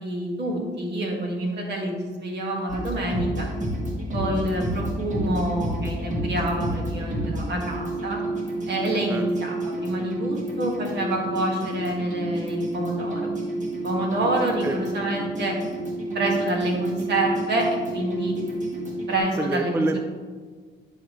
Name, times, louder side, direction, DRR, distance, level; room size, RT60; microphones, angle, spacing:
voice 1, 0.0-3.5 4.1-8.2 8.7-13.3 13.8-15.6 16.1-17.7 17.9-18.4 19.1-19.9, right 1 dB, 60° right, -1 dB, 1.8 m, -27 dB
sound 1, 2.7-19.2, right 1 dB, 40° right, 1.8 m, -29 dB
voice 2, 14.6-15.0 19.4-20.0, right 2 dB, 10° right, 6 dB, 0.4 m, -27 dB
9.9 x 4.9 x 3.1 m, 1.5 s
cardioid pair, 90°, 20 cm